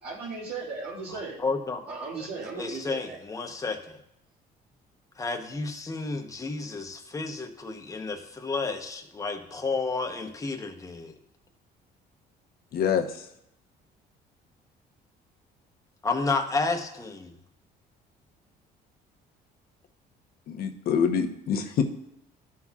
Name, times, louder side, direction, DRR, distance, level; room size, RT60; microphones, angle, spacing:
voice 1, 0.0-1.4 1.9-3.2, right 4 dB, 70° right, -8 dB, 2.2 m, -36 dB
voice 2, 1.1-1.8 2.6-4.0 5.2-11.1 16.0-17.4, left 3 dB, 20° left, 4 dB, 0.9 m, -31 dB
voice 3, 12.7-13.0 20.5-21.8, left 7 dB, 65° left, 5 dB, 0.9 m, -25 dB
13.0 x 5.7 x 2.4 m, 0.78 s
cardioid pair, 110°, 17 cm